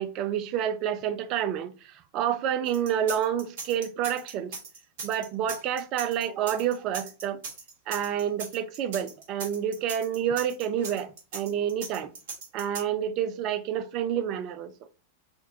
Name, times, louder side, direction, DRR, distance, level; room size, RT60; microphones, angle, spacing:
voice 1, 0.0-4.6 5.0-7.4 7.9-12.1 12.5-14.7, right 9 dB, 40° right, 0.4 m, -29 dB
sound 1, 2.7-12.8, right 4 dB, 55° right, 1.1 m, -39 dB
3.6 x 2.2 x 2.7 m
figure-of-eight pair, 90°, 0 cm